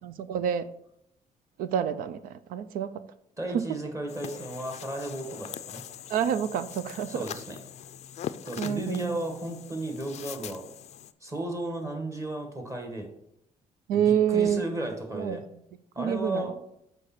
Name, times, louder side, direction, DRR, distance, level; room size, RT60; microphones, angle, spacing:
voice 1, 0.0-0.7 1.6-2.2 2.5-3.0 3.5-3.6 6.1-7.2 8.6-9.2 13.9-14.6 15.1-15.4 16.0-16.5, right 8 dB, 85° right, 14 dB, 0.5 m, -27 dB
voice 2, 3.4-5.8 7.1-7.6 8.4-10.6 11.2-13.1 13.9-15.4 15.9-16.6, right 1 dB, 20° right, 3 dB, 1.6 m, -34 dB
sound 1, 4.1-11.1, left 10 dB, 50° left, 0.4 m, -42 dB
6.5 x 5.1 x 4.3 m, 0.76 s
cardioid pair, 115°, 14 cm